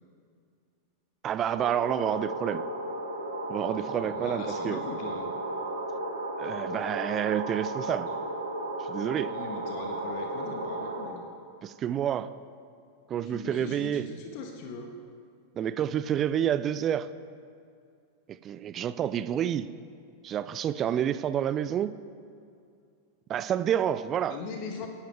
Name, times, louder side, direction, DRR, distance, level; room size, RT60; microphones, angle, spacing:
voice 1, 1.2-2.6 3.5-4.8 6.4-8.1 8.9-9.4 11.6-12.3 13.1-14.1 15.6-17.1 18.3-19.7 20.2-21.9 23.3-24.4, right 9 dB, 30° right, 15 dB, 0.5 m, -29 dB
sound 1, 1.5-11.0, right 2 dB, 70° right, 2.3 m, -34 dB
voice 2, 3.8-5.3 9.3-11.2 13.2-14.9 19.3-19.5 24.3-24.9, left 4 dB, 45° left, 3 dB, 1.5 m, -40 dB
24.0 x 11.5 x 3.5 m, 2.4 s
figure-of-eight pair, 90°, 0 cm